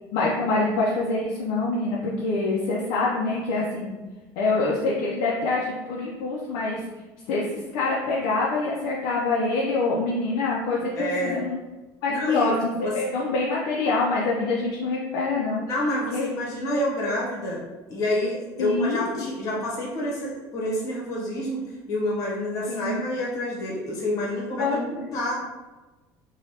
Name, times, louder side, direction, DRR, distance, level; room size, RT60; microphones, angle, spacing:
voice 1, 0.1-4.0 4.4-6.8 7.3-11.6 12.0-15.6 16.1-16.3 16.7-16.8 18.6-19.2 22.7-23.1 24.6-25.1, left 3 dB, 80° left, -4 dB, 0.5 m, -25 dB
voice 2, 11.0-11.4 12.1-12.9 15.6-17.6 17.9-21.6 21.9-25.3, left 1 dB, 45° left, -4 dB, 1.0 m, -28 dB
3.1 x 2.3 x 2.8 m, 1.2 s
cardioid pair, 155°, 8 cm